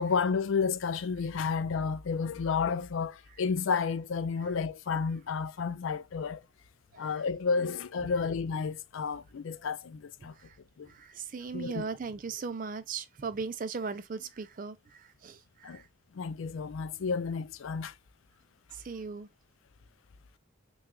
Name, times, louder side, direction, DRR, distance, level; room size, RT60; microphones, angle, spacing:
voice 1, 0.0-6.4 7.0-10.3 10.8-10.9 11.5-11.9 15.6-15.8 16.1-17.9, left 5 dB, 70° left, 0.4 m, -31 dB
voice 2, 10.9-15.9 18.7-19.3, right 5 dB, 40° right, 0.4 m, -38 dB
5.9 x 2.3 x 2.3 m
head